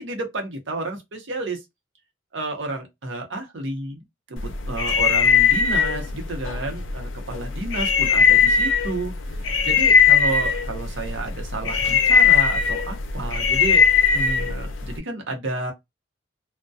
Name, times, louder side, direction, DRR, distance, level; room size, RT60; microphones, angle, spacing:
voice 1, 0.0-1.6 2.3-4.0 4.3-9.1 9.6-13.9 14.1-15.7, right 2 dB, 70° right, 0.7 m, -31 dB
sound 1, 4.4-15.0, left 6 dB, 80° left, 0.4 m, -20 dB
2.3 x 2.1 x 2.5 m
head